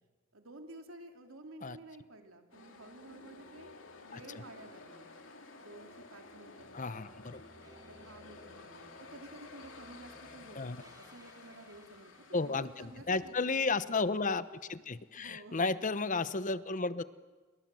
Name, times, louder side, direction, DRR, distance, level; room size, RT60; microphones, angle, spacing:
voice 1, 0.3-5.1 5.6-7.3 7.9-13.8 15.1-15.7, right 2 dB, 90° right, 4 dB, 3.0 m, -52 dB
sound 1, 2.5-15.4, left 3 dB, 65° left, 3.0 m, -54 dB
voice 2, 4.1-4.4 6.7-7.4 10.6-10.8 12.3-17.0, left 3 dB, 40° left, 14 dB, 0.9 m, -33 dB
sound 2, 6.6-13.3, right 1 dB, 20° right, 1.6 m, -61 dB
29.5 x 24.0 x 7.7 m, 1.3 s
head